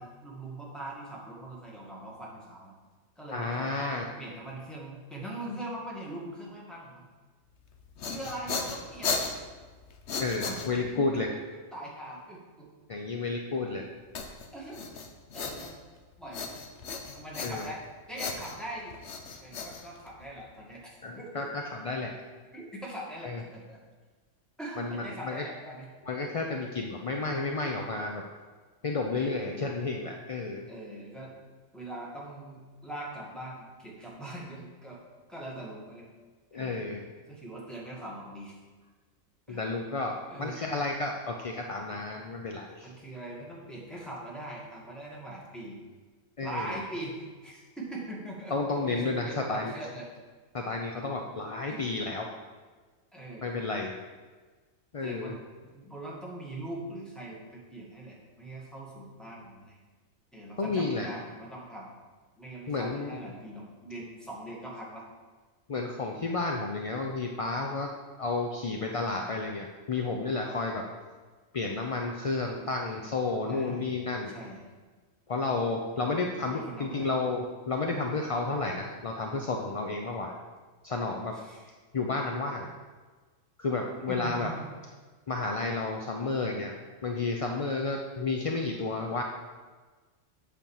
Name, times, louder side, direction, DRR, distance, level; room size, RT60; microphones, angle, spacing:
voice 1, 0.0-2.7 3.2-7.0 8.1-9.1 10.4-10.6 10.9-12.7 14.5-14.8 15.3-15.7 16.2-16.5 17.1-19.0 19.4-21.4 22.5-23.8 24.6-25.9 29.1-29.6 30.7-31.3 31.7-35.0 35.3-36.1 36.5-36.8 37.3-38.6 39.5-39.7 40.3-40.6 42.8-45.8 46.4-50.1 51.7-51.8 53.1-53.5 55.0-55.4 55.7-59.8 60.3-61.9 62.4-65.1 73.5-73.8 74.3-74.6 75.9-77.1 81.3-81.7 84.1-84.8, right 1 dB, ahead, -4 dB, 1.8 m, -41 dB
voice 2, 3.3-4.0 10.2-11.3 12.9-13.8 17.4-17.7 21.0-22.1 23.2-23.4 24.8-25.4 26.1-28.2 28.8-30.7 36.5-37.0 39.5-40.1 40.4-42.9 46.4-46.7 48.5-49.8 50.5-52.3 53.4-53.9 54.9-55.3 60.6-61.1 62.7-63.2 65.7-67.9 68.2-70.8 71.5-74.3 75.3-80.3 80.8-81.3 81.9-82.7 83.6-84.5 85.3-86.7 87.0-89.2, left 3 dB, 45° left, 1 dB, 0.4 m, -31 dB
sound 1, 7.7-11.1 14.1-16.0 16.3-17.8 18.2-20.4, left 4 dB, 65° left, 1.1 m, -36 dB
8.1 x 4.4 x 7.2 m, 1.4 s
omnidirectional pair, 1.3 m